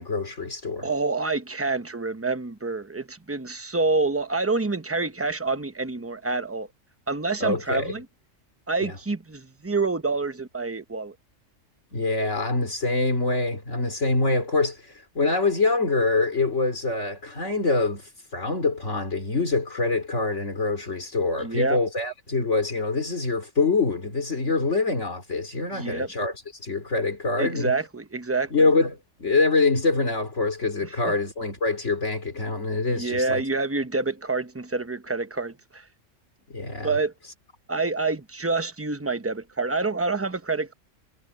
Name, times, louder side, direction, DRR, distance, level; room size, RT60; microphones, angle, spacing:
voice 1, 0.0-0.9 7.4-7.9 8.8-8.9 11.9-26.3 26.6-27.7 28.5-33.4 36.5-37.0, left 3 dB, 65° left, 3.5 m, -25 dB
voice 2, 0.8-6.7 7.1-8.0 8.7-11.1 21.4-21.8 25.7-26.1 27.4-28.5 30.8-30.9 32.9-35.8 36.8-37.1 37.7-40.7, right 3 dB, 15° right, 0.7 m, -27 dB
omnidirectional pair, 1.3 m